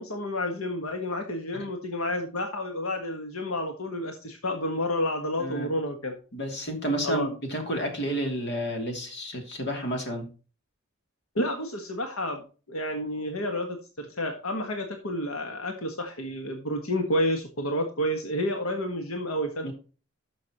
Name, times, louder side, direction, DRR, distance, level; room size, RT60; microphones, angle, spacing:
voice 1, 0.0-6.2 7.0-7.3 11.3-19.7, left 1 dB, 85° left, 4 dB, 1.5 m, -30 dB
voice 2, 5.4-5.7 6.3-10.3 19.6-19.7, right 1 dB, 55° left, 3 dB, 2.8 m, -31 dB
12.5 x 6.3 x 3.0 m, 0.35 s
head